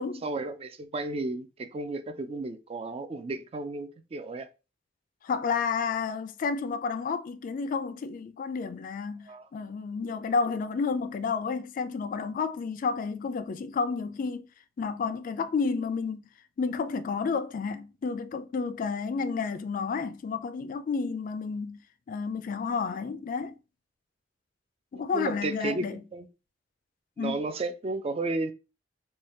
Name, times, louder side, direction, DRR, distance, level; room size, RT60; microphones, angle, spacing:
voice 1, 0.0-4.5 9.3-9.5 25.1-26.3 27.2-28.5, right 2 dB, 35° right, 0.4 m, -33 dB
voice 2, 5.2-14.5 14.8-16.2 16.6-21.8 22.1-23.5 24.9-26.0 27.2-27.4, left 5 dB, 45° left, 0.3 m, -31 dB
3.2 x 2.3 x 4.2 m
head